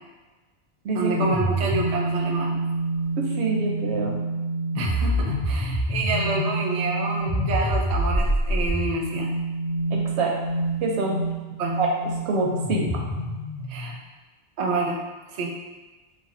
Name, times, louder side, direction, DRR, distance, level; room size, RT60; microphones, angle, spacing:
voice 1, 0.9-2.6 4.7-9.3 11.6-11.8 13.7-14.0 14.6-15.0 15.3-15.5, right 3 dB, 45° right, -2 dB, 0.5 m, -28 dB
sound 1, 1.1-13.9, right 1 dB, 75° left, 1.2 m, -27 dB
voice 2, 3.4-4.2 9.9-10.3 10.8-11.2 11.8-11.9 12.3-12.9, right 3 dB, 80° right, -1 dB, 0.9 m, -25 dB
3.3 x 2.2 x 3.7 m, 1.2 s
omnidirectional pair, 1.1 m